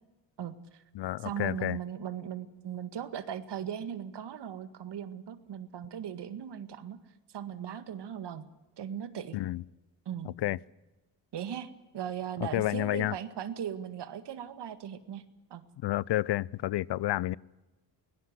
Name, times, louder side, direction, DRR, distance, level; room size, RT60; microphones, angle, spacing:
voice 1, 0.4-0.8 1.2-7.0 7.3-8.4 8.8-9.4 10.1-10.3 11.3-15.2 15.5-15.6, right 9 dB, 65° right, 1.9 m, -38 dB
voice 2, 0.9-1.8 9.3-9.6 10.2-10.6 12.4-13.1 15.8-17.4, left 15 dB, 65° left, 0.6 m, -30 dB
23.5 x 17.5 x 7.9 m
supercardioid pair, 70°, 45 cm